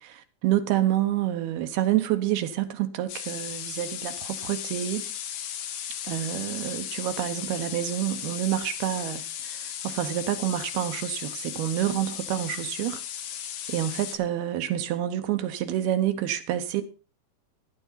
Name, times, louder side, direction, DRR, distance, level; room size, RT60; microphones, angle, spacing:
voice 1, 0.0-5.1 6.0-13.0 13.7-16.8, right 12 dB, 75° right, 2.8 m, -28 dB
sound 1, 3.1-14.2, left 10 dB, 75° left, 3.6 m, -36 dB
15.5 x 12.0 x 4.0 m
omnidirectional pair, 4.8 m